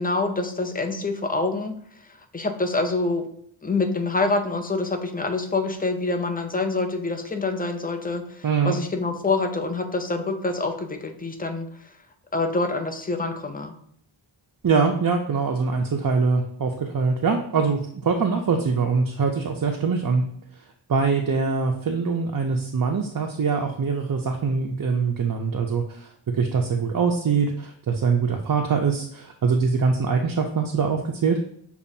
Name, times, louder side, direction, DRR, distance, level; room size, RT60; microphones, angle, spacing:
voice 1, 0.0-1.7 2.3-3.2 3.6-11.7 12.3-13.7, left 3 dB, 20° left, 5 dB, 0.5 m, -26 dB
voice 2, 8.4-8.8 14.6-20.2 20.9-31.5, right 5 dB, 45° right, 2 dB, 0.4 m, -23 dB
6.8 x 2.4 x 2.6 m, 0.65 s
wide cardioid pair, 40°, 50 cm